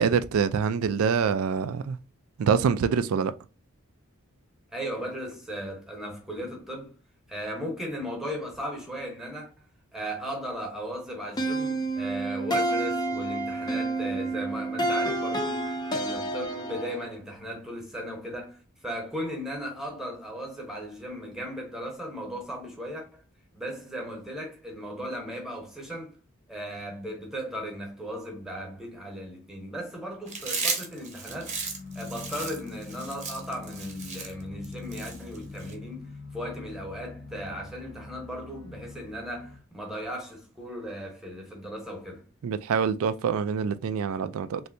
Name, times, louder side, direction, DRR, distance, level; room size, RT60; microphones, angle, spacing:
voice 1, 0.0-2.0 2.4-3.3 42.4-44.6, right 6 dB, 65° right, 0.3 m, -25 dB
voice 2, 4.7-6.9 7.3-9.5 9.9-23.2 23.5-26.2 26.5-31.6 31.9-42.2, equal, ahead, 0.9 m, -37 dB
sound 1, 11.4-17.2, right 2 dB, 20° left, 0.5 m, -29 dB
Chewing mastication, 30.3-35.7, right 4 dB, 30° right, 0.8 m, -34 dB
sound 2, 31.3-39.6, left 3 dB, 65° left, 0.7 m, -43 dB
3.2 x 2.7 x 2.6 m
head